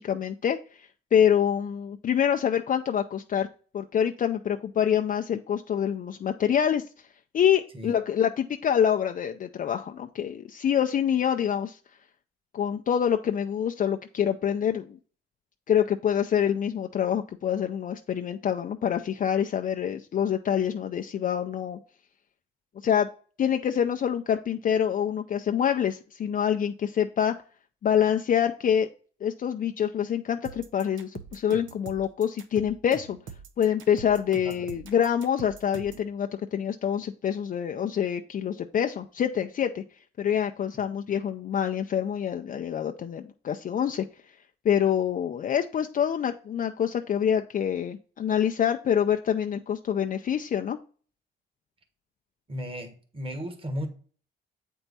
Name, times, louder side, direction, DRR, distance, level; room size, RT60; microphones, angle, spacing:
voice 1, 0.0-3.5 3.7-6.8 7.3-11.8 12.5-15.0 15.7-21.8 22.8-23.1 23.4-27.3 27.8-28.9 29.2-33.2 33.6-39.8 40.2-44.0 44.6-50.8, left 9 dB, 45° left, 0.5 m, -26 dB
sound 1, 30.4-36.1, right 6 dB, 75° right, 0.8 m, -43 dB
voice 2, 52.5-53.9, equal, 25° right, 1.5 m, -34 dB
7.8 x 4.5 x 4.1 m
cardioid pair, 90°, 20 cm